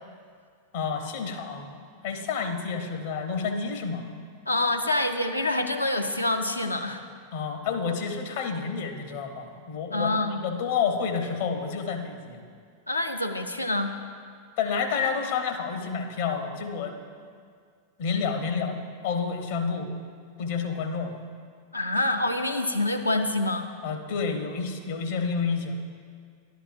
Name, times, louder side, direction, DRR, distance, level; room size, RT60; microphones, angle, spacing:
voice 1, 0.7-4.0 7.3-12.4 14.6-16.9 18.0-18.8 19.0-19.9 20.4-21.2 23.8-25.8, left 5 dB, 55° left, 5 dB, 0.8 m, -29 dB
voice 2, 4.5-7.0 9.9-10.4 12.9-13.9 21.7-23.7, left 2 dB, 85° left, 5 dB, 0.5 m, -26 dB
11.0 x 10.0 x 2.5 m, 2.1 s
figure-of-eight pair, 90°, 0 cm